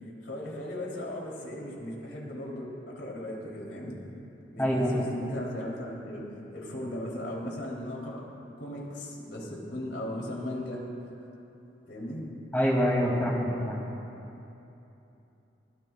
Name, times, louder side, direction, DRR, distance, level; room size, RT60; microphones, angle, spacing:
voice 1, 0.2-4.0 4.5-8.3 8.6-10.8 11.9-12.3, left 1 dB, 80° left, -3 dB, 3.2 m, -37 dB
voice 2, 4.6-5.0 12.5-13.8, equal, 10° left, -3 dB, 2.4 m, -25 dB
23.5 x 17.0 x 2.3 m, 2.9 s
head